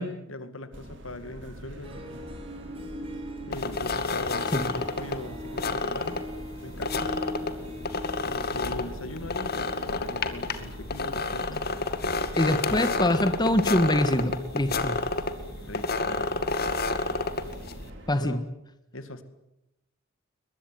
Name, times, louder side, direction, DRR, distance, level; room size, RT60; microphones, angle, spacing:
voice 1, 0.0-2.3 3.5-6.3 6.6-7.2 8.2-11.7 12.4-13.3 15.6-16.3 18.2-18.5 18.9-19.2, left 1 dB, 80° left, 11 dB, 2.4 m, -40 dB
sound 1, 0.7-18.2, right 1 dB, 65° right, 5.4 m, -43 dB
Harp, 1.8-11.3, left 2 dB, 30° right, 4.3 m, -42 dB
sound 2, 3.5-17.9, left 3 dB, 50° left, 2.1 m, -30 dB
voice 2, 12.3-14.9 18.1-18.4, left 1 dB, 20° left, 10 dB, 1.6 m, -24 dB
22.5 x 21.5 x 9.3 m, 0.85 s
head